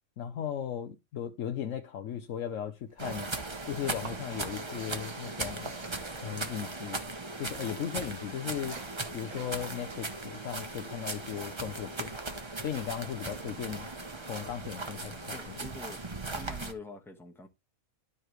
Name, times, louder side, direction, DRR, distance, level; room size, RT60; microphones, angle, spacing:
voice 1, 0.2-3.3 3.6-5.7 6.2-7.0 7.4-8.8 9.1-12.1 12.6-13.9 14.2-15.6, left 9 dB, 65° left, 1.0 m, -37 dB
sound 1, 2.1-2.6 2.9-7.0 7.2-12.8, right 4 dB, 90° right, 2.1 m, -51 dB
sound 2, 3.0-16.7, right 2 dB, 20° right, 1.0 m, -38 dB
voice 2, 15.3-16.0 16.3-17.5, left 2 dB, ahead, 1.1 m, -45 dB
12.5 x 4.6 x 3.2 m
omnidirectional pair, 1.5 m